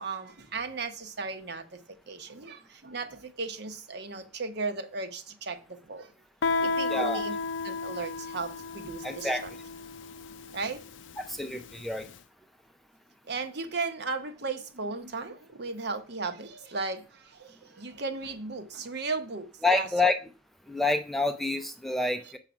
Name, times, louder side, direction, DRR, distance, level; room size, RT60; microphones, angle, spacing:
voice 1, 0.0-1.8 2.1-6.1 6.6-7.3 7.6-9.5 10.5-10.8 13.3-19.9, right 4 dB, 55° right, 8 dB, 1.0 m, -36 dB
Guitar, 6.4-11.9, left 4 dB, 75° left, 0.5 m, -33 dB
voice 2, 6.9-7.2 9.0-9.5 11.2-12.1 19.6-20.2 20.7-22.4, left 2 dB, ahead, 7 dB, 0.5 m, -28 dB
7.3 x 5.8 x 5.1 m, 0.35 s
head